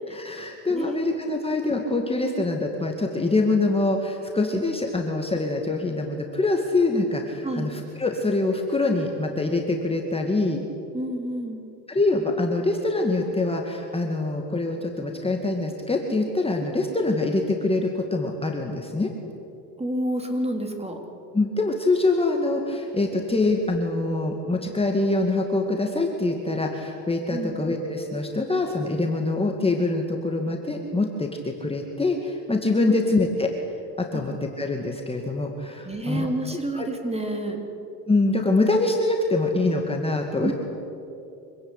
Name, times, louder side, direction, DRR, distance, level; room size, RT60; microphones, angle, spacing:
voice 1, 0.1-10.6 11.9-19.1 21.3-33.5 34.0-36.3 36.7-36.9 38.1-40.5, left 2 dB, 15° left, 1 dB, 2.2 m, -24 dB
voice 2, 10.9-11.6 19.8-21.0 27.3-27.5 34.1-34.2 35.8-37.6 40.4-40.5, right 1 dB, 15° right, 4 dB, 3.4 m, -29 dB
25.5 x 16.0 x 9.9 m, 2.7 s
cardioid pair, 115°, 43 cm